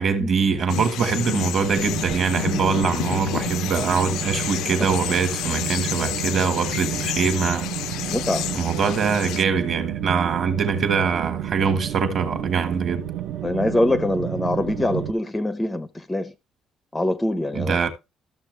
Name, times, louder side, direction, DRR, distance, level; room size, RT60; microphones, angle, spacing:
voice 1, 0.0-7.7 8.5-13.0 17.5-17.9, right 5 dB, 45° right, 1.5 m, -23 dB
sound 1, 0.7-9.4, left 13 dB, 80° left, 0.5 m, -30 dB
sound 2, 1.6-15.1, right 11 dB, 70° right, 0.8 m, -31 dB
voice 2, 8.1-8.5 13.4-16.3 16.9-17.8, left 1 dB, 10° left, 0.5 m, -24 dB
13.5 x 6.9 x 3.2 m
cardioid pair, 165°, 0 cm